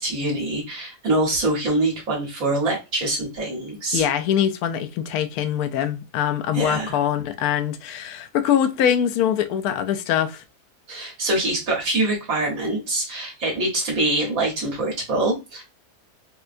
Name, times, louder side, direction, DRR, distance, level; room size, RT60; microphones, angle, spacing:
voice 1, 0.0-4.1 6.5-6.9 10.9-15.6, right 2 dB, 60° right, 1.7 m, -24 dB
voice 2, 3.9-10.4, left 9 dB, 75° left, 1.0 m, -23 dB
4.4 x 2.2 x 2.5 m
omnidirectional pair, 1.7 m